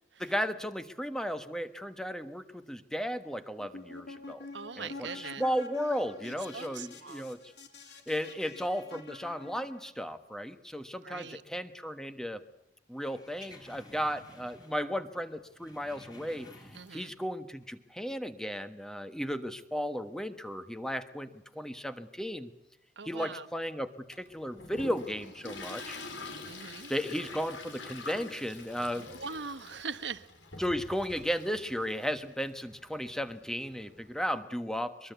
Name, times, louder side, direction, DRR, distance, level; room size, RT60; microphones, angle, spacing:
voice 1, 0.2-4.4 4.8-7.4 8.1-12.4 12.9-16.5 16.9-22.5 23.0-26.0 26.9-29.1 30.6-35.1, equal, 5° left, 10 dB, 1.2 m, -35 dB
sound 1, 3.6-9.9, left 3 dB, 65° left, 3.2 m, -47 dB
voice 2, 4.5-5.4 6.5-7.3 11.0-11.4 16.7-17.1 23.0-23.5 26.4-26.9 29.0-30.3, right 5 dB, 75° right, 12 dB, 1.2 m, -41 dB
sound 2, 13.0-14.9 15.2-17.2 17.5-17.7, left 1 dB, 20° left, 3.4 m, -53 dB
Toilet flush, 24.1-34.4, left 3 dB, 90° left, 5.3 m, -46 dB
23.0 x 23.0 x 8.2 m, 0.76 s
head